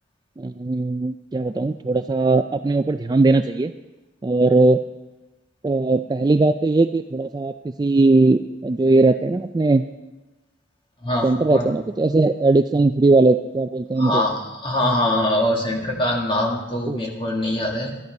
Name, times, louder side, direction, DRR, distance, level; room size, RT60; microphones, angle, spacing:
voice 1, 0.4-3.7 4.2-4.8 5.6-7.5 7.8-9.8 11.2-14.2 16.9-17.0, right 3 dB, 20° right, 9 dB, 0.3 m, -19 dB
voice 2, 11.0-11.7 14.0-14.3 14.6-17.9, left 1 dB, 30° left, 0 dB, 2.0 m, -23 dB
13.0 x 11.0 x 5.4 m, 1.1 s
head